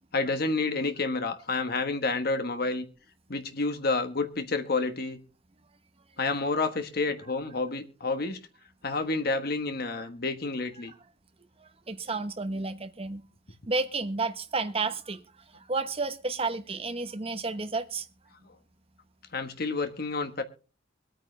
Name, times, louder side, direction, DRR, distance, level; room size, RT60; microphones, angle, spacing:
voice 1, 0.1-2.8 3.3-5.2 6.2-8.4 8.8-10.9 18.5-18.6 19.3-20.4, left 3 dB, 55° left, 1.3 m, -29 dB
voice 2, 11.6-13.2 13.7-15.2 15.5-18.0, right 3 dB, 30° right, 1.0 m, -31 dB
23.5 x 9.2 x 3.3 m
head